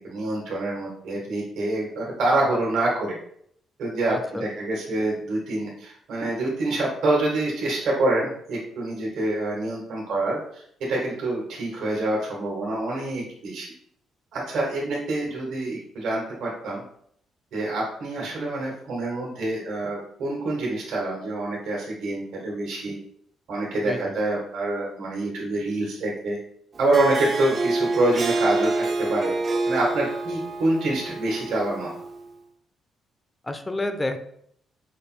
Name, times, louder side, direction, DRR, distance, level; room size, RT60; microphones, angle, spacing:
voice 1, 0.0-3.2 3.8-13.7 14.3-16.8 17.5-23.0 23.5-26.4 26.8-29.3 29.7-31.9, right 2 dB, 75° right, -3 dB, 1.4 m, -26 dB
voice 2, 4.0-4.5 23.8-24.2 33.4-34.2, left 2 dB, 15° left, 8 dB, 0.5 m, -30 dB
Harp, 26.7-32.2, right 2 dB, 40° right, 0.6 m, -27 dB
5.1 x 2.1 x 4.3 m, 0.68 s
cardioid pair, 90°, 0 cm